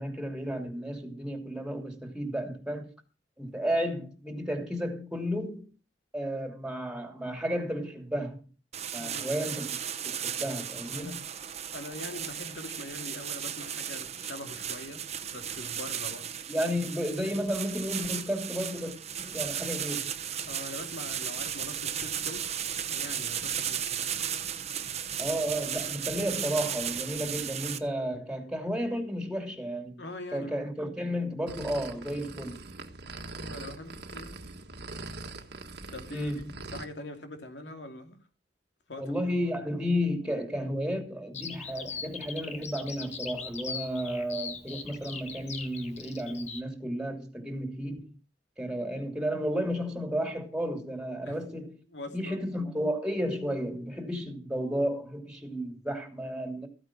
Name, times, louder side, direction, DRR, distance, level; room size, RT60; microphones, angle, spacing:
voice 1, 0.0-2.9 3.4-5.7 6.1-8.5 8.9-9.8 10.0-11.2 16.5-18.9 19.2-20.1 25.2-30.0 30.3-32.6 36.1-36.4 39.0-48.2 48.6-51.7 52.1-56.7, equal, 5° right, 2.9 m, -32 dB
sound 1, 8.7-27.8, right 9 dB, 40° right, 1.1 m, -35 dB
voice 2, 9.0-9.4 10.9-11.2 11.7-16.3 20.5-24.1 30.0-30.7 33.2-34.5 35.9-36.3 36.7-38.2 38.9-39.1 51.2-51.4 51.9-52.4, left 2 dB, 75° left, 2.7 m, -43 dB
sound 2, 31.5-36.9, right 3 dB, 65° right, 1.6 m, -42 dB
Bird vocalization bird call bird song, 41.3-46.6, left 5 dB, 40° left, 1.4 m, -40 dB
15.0 x 8.9 x 6.1 m
head